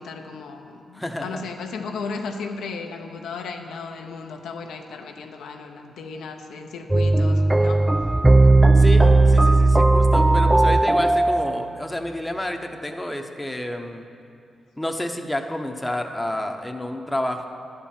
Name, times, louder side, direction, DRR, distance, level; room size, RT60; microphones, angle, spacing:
voice 1, 0.0-8.1, left 4 dB, 85° left, 3 dB, 0.6 m, -35 dB
voice 2, 0.9-1.4 8.7-14.0 14.8-17.5, left 1 dB, 10° left, 4 dB, 0.8 m, -29 dB
sound 1, 6.9-11.6, right 2 dB, 15° right, 0.3 m, -16 dB
11.0 x 4.5 x 7.4 m, 2.5 s
supercardioid pair, 55°, 0 cm